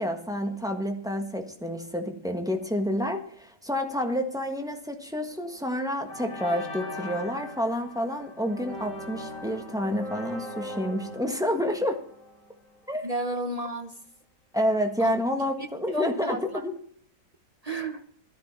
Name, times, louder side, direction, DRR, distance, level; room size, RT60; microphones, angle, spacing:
voice 1, 0.0-12.0 12.9-13.0 14.5-16.7, equal, ahead, 4 dB, 1.3 m, -29 dB
sound 1, 5.3-5.6 6.1-12.9, left 1 dB, 80° left, 4.3 m, -40 dB
voice 2, 13.0-14.0 15.0-15.7 15.9-16.6 17.6-18.0, right 1 dB, 35° right, 7 dB, 0.6 m, -33 dB
13.5 x 12.0 x 4.3 m, 0.63 s
omnidirectional pair, 1.9 m